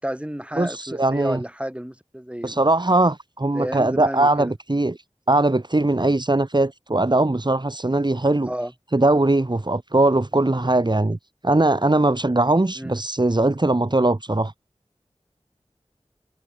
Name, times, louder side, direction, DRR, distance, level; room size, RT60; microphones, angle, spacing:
voice 1, 0.0-2.6 3.5-4.5 8.5-8.7 12.8-13.0, equal, 10° right, 5.3 m, -31 dB
voice 2, 0.6-1.4 2.4-5.0 5.3-8.5 8.9-11.2 11.4-14.5, right 2 dB, 40° right, 1.8 m, -20 dB
wide cardioid pair, 50°, 12 cm